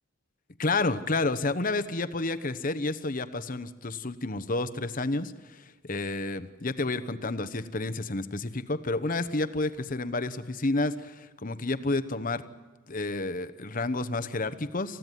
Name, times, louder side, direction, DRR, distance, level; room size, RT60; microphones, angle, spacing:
voice 1, 0.6-12.4 12.9-15.0, left 2 dB, 45° left, 11 dB, 1.0 m, -30 dB
28.0 x 15.0 x 9.3 m, 1.3 s
head